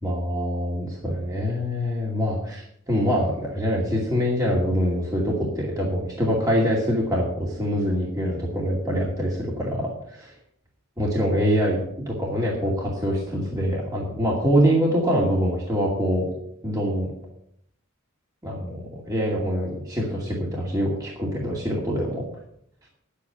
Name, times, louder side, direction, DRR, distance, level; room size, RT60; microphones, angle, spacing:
voice 1, 0.0-10.3 11.0-11.8 12.1-16.3 16.6-17.1 18.4-22.2, equal, 15° right, -4 dB, 2.5 m, -24 dB
10.5 x 8.5 x 6.9 m, 0.70 s
head